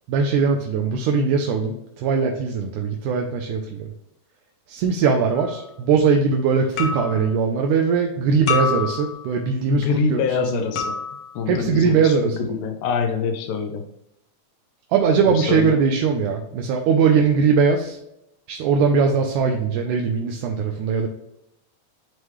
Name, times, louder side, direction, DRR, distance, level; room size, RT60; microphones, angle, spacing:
voice 1, 0.1-3.9 4.7-10.2 10.5-10.6 11.5-12.5 14.9-18.0 18.5-21.1, right 5 dB, 80° right, 3 dB, 2.1 m, -20 dB
sound 1, 5.4-5.6 6.8-7.3 8.5-9.4 10.8-11.4, left 5 dB, 70° left, 1.3 m, -27 dB
voice 2, 9.7-11.0 11.4-13.8 15.3-15.8, left 5 dB, 90° left, 4 dB, 2.2 m, -25 dB
9.3 x 3.3 x 3.1 m, 0.82 s
omnidirectional pair, 3.6 m